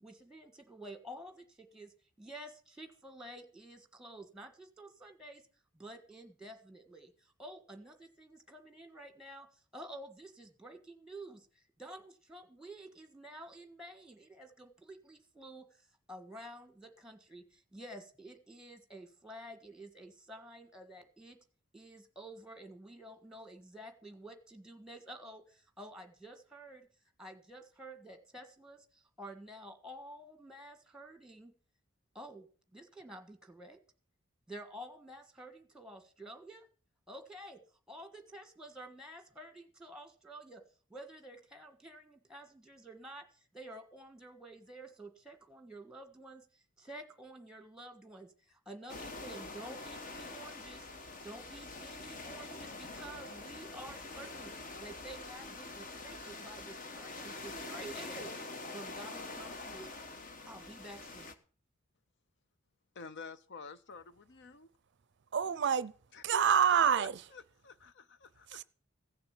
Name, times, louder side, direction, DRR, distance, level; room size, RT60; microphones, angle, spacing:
voice 1, 0.0-1.9 2.2-5.4 5.7-15.7 16.1-21.4 21.7-26.9 27.2-31.5 32.1-32.5 32.7-33.8 34.5-36.7 37.1-37.6 37.9-40.6 40.9-43.2 43.5-46.4 46.8-50.9 51.2-54.5 54.8-58.3 58.7-59.9 60.4-61.3, right 1 dB, 5° right, 1.6 m, -50 dB
sound 1, 48.9-61.3, left 3 dB, 40° left, 1.2 m, -45 dB
voice 2, 62.9-64.7 66.1-68.6, left 5 dB, 55° left, 0.6 m, -50 dB
voice 3, 65.3-65.9 66.2-67.1 68.5-68.6, right 8 dB, 55° right, 0.5 m, -27 dB
16.0 x 6.9 x 7.3 m
head